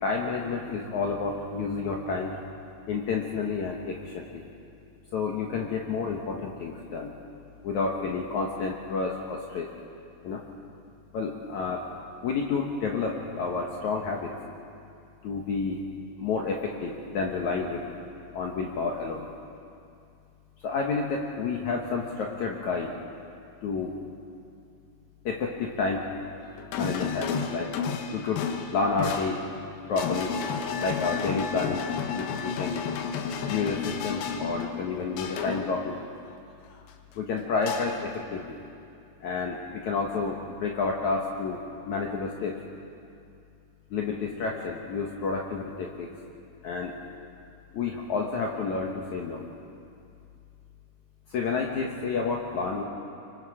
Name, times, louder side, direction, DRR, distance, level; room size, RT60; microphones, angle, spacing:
voice 1, 0.0-2.3 2.9-4.4 5.1-7.1 7.6-9.7 10.2-10.4 11.1-11.8 12.2-14.3 15.2-15.8 16.2-17.8 18.3-19.3 20.6-22.9 23.6-23.9 25.3-26.0 26.8-27.7 28.1-28.5 28.7-29.4 29.9-30.3 30.8-31.8 32.1-32.9 33.5-36.0 37.2-38.6 39.2-41.6 41.8-42.6 43.9-46.1 46.6-46.9 47.7-49.4 51.3-52.8, left 4 dB, 60° left, 0 dB, 2.3 m, -30 dB
sound 1, 26.4-35.8 37.7-38.2, left 6 dB, 80° left, 2.9 m, -32 dB
25.0 x 24.5 x 5.0 m, 2.5 s
omnidirectional pair, 4.4 m